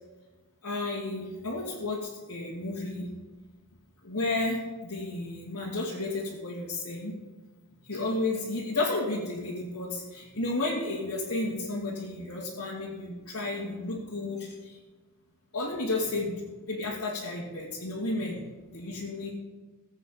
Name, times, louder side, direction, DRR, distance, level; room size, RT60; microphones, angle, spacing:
voice 1, 0.6-3.1 4.0-7.1 7.8-14.8 15.5-18.4 18.7-19.3, left 2 dB, 90° left, -7 dB, 2.9 m, -32 dB
21.0 x 8.2 x 4.2 m, 1.3 s
head